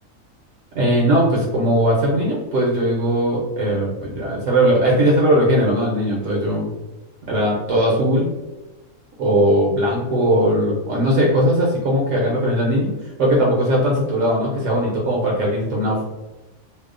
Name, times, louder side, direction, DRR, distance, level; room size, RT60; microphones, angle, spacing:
voice 1, 0.7-6.7 7.3-8.3 9.2-12.9 13.2-16.0, equal, 70° right, -3 dB, 0.9 m, -19 dB
2.7 x 2.0 x 2.4 m, 1.1 s
omnidirectional pair, 1.5 m